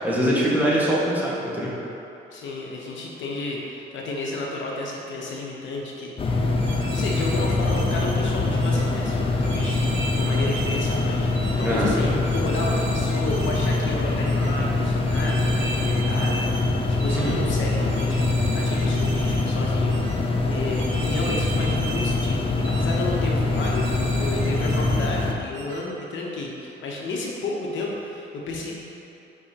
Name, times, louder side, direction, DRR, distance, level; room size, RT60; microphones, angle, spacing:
voice 1, 0.0-1.7 11.6-11.9 17.1-17.4, equal, 10° right, -7 dB, 1.5 m, -23 dB
voice 2, 2.3-6.6 6.9-28.7, left 2 dB, 70° left, -2 dB, 0.9 m, -32 dB
sound 1, 6.2-25.3, left 2 dB, 30° left, 0.6 m, -24 dB
sound 2, 6.6-8.2 8.6-8.9 9.4-11.0 11.3-11.7 12.2-13.8 14.2-14.5 15.0-16.7 17.0-17.3 17.9-19.5 19.9-20.2 20.7-22.3 22.6-23.0 23.5-25.1 25.5-25.8, right 3 dB, 70° right, 0.9 m, -37 dB
7.1 x 4.9 x 2.9 m, 2.9 s
cardioid pair, 90°, 20 cm